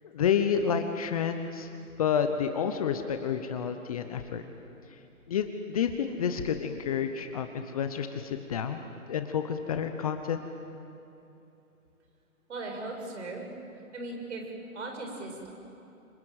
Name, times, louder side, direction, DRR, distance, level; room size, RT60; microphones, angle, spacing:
voice 1, 0.0-1.7 2.0-4.4 5.3-10.4, left 7 dB, 25° left, 7 dB, 1.0 m, -29 dB
voice 2, 12.5-13.5 13.9-14.4 14.7-15.5, right 2 dB, 50° right, 2 dB, 6.8 m, -38 dB
27.0 x 26.5 x 7.7 m, 2.9 s
figure-of-eight pair, 145°, 44 cm